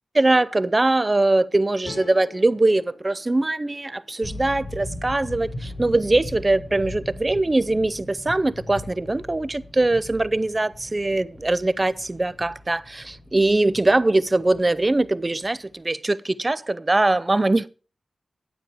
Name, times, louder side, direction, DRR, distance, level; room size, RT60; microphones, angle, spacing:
voice 1, 0.1-17.7, right 2 dB, 25° right, 0.5 m, -22 dB
sound 1, 1.8-5.0, left 3 dB, 85° left, 2.2 m, -45 dB
sound 2, 4.2-15.7, left 1 dB, 30° left, 5.8 m, -39 dB
10.0 x 8.8 x 4.9 m
wide cardioid pair, 80°, 0 cm